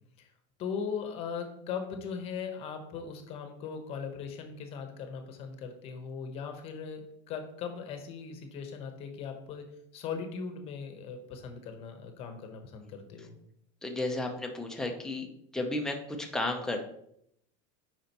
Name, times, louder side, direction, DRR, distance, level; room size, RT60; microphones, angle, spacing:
voice 1, 0.6-9.6 9.9-13.4, left 6 dB, 40° left, 6 dB, 1.0 m, -39 dB
voice 2, 13.8-15.3 15.5-16.8, left 2 dB, 5° left, 2 dB, 0.7 m, -33 dB
8.5 x 5.0 x 3.0 m, 0.73 s
supercardioid pair, 150°, 16 cm